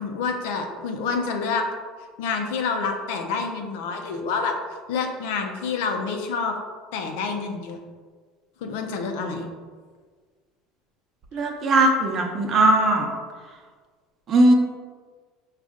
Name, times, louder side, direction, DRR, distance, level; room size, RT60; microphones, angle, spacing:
voice 1, 0.0-1.6 2.2-4.5 4.9-6.5 6.9-7.8 8.6-9.5, left 5 dB, 80° left, 3 dB, 0.6 m, -27 dB
voice 2, 11.3-13.1 14.3-14.5, right 1 dB, 45° right, 1 dB, 0.8 m, -18 dB
5.1 x 2.4 x 3.6 m, 1.5 s
supercardioid pair, 95°, 0 cm